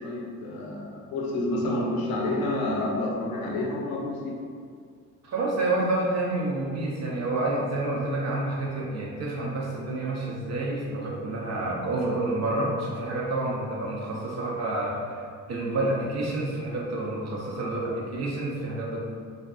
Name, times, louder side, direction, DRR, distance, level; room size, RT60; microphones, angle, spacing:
voice 1, 0.0-4.3, left 1 dB, 80° left, -2 dB, 0.6 m, -29 dB
voice 2, 5.2-15.2 15.5-19.0, right 2 dB, 45° right, -3 dB, 0.7 m, -29 dB
2.5 x 2.4 x 2.3 m, 2.1 s
supercardioid pair, 70°, 36 cm